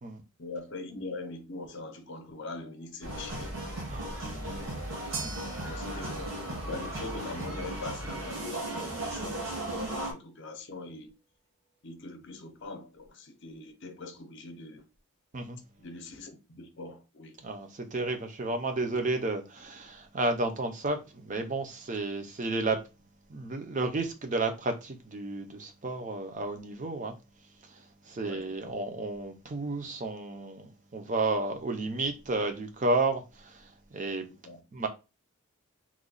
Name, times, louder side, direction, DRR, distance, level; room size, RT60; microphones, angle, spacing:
voice 1, 0.4-3.6 4.2-4.7 5.6-11.1 11.8-14.8 15.8-17.4 28.2-28.8 34.3-34.6, left 2 dB, 50° left, 0.6 m, -42 dB
sound 1, 3.0-10.1, right 1 dB, 60° right, 1.1 m, -36 dB
sound 2, 5.1-13.5, right 5 dB, 85° right, 1.0 m, -48 dB
voice 2, 17.4-22.8 23.3-27.2 28.1-34.2 34.7-34.9, right 2 dB, 35° right, 0.5 m, -32 dB
3.0 x 2.2 x 3.8 m
head